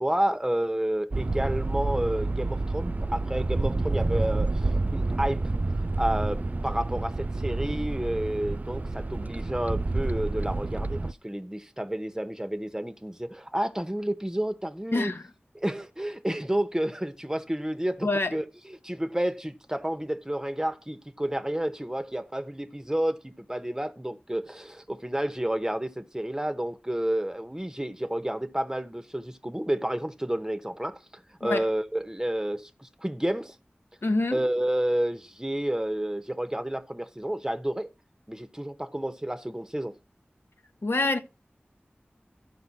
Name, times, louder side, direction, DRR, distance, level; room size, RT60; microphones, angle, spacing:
voice 1, 0.0-5.5 6.0-15.1 15.5-33.6 34.3-37.9 38.3-40.0, right 1 dB, 15° right, 0.9 m, -30 dB
sound 1, 1.1-11.1, right 2 dB, 40° right, 0.4 m, -29 dB
voice 2, 14.9-15.3 18.0-18.3 31.4-31.6 34.0-34.4 40.8-41.2, left 2 dB, 70° left, 0.9 m, -26 dB
13.5 x 5.3 x 4.1 m
wide cardioid pair, 50°, 4 cm